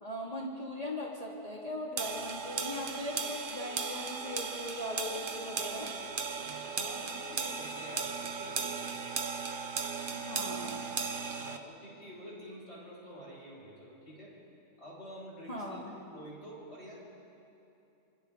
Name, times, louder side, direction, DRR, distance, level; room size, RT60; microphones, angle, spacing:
voice 1, 0.0-5.9 10.1-10.9 15.5-15.8, left 1 dB, 25° left, -4 dB, 2.6 m, -39 dB
sound 1, 2.0-11.6, right 5 dB, 40° right, 0.9 m, -36 dB
voice 2, 6.3-9.0 11.4-14.3 14.8-16.9, equal, 45° left, -7 dB, 7.3 m, -48 dB
28.5 x 26.0 x 4.0 m, 2.8 s
omnidirectional pair, 1.7 m